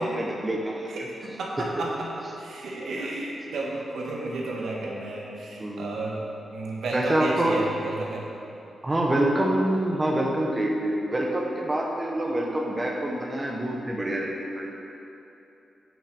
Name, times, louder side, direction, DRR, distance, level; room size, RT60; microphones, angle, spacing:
voice 1, 0.0-1.0 1.6-1.7 5.6-6.0 6.9-7.6 8.8-14.7, right 1 dB, 20° right, -1 dB, 1.0 m, -26 dB
voice 2, 0.9-2.1 2.4-6.2 6.5-8.3, right 2 dB, 80° right, -3 dB, 1.7 m, -32 dB
8.6 x 5.8 x 6.8 m, 2.9 s
wide cardioid pair, 125°, 0 cm